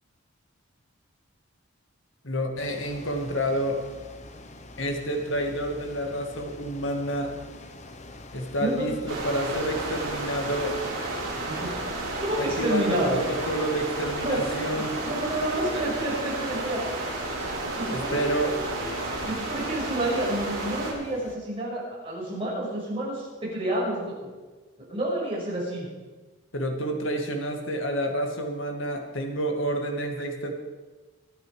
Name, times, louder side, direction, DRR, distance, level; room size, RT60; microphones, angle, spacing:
voice 1, 2.2-3.8 4.8-7.3 8.3-10.7 12.4-15.0 17.9-18.5 26.5-30.5, right 1 dB, 65° left, 3 dB, 2.1 m, -29 dB
sound 1, 2.6-21.4, left 2 dB, 35° left, 1.1 m, -45 dB
voice 2, 8.6-9.0 11.2-11.7 12.2-13.2 14.2-14.4 14.8-16.8 17.7-18.3 19.2-24.3 24.8-25.9, right 1 dB, 25° right, -5 dB, 6.6 m, -29 dB
sound 2, 9.1-20.9, right 2 dB, 65° right, 5.2 m, -32 dB
24.0 x 9.3 x 5.1 m, 1.3 s
head